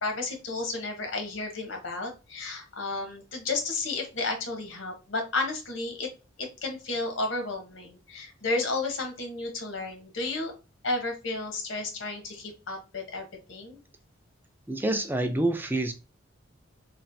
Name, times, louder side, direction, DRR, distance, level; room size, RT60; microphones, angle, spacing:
voice 1, 0.0-6.1 6.4-10.5 10.8-13.8, left 3 dB, 75° left, 1.0 m, -32 dB
voice 2, 14.7-15.9, right 2 dB, 10° right, 0.3 m, -27 dB
3.1 x 2.5 x 2.5 m
head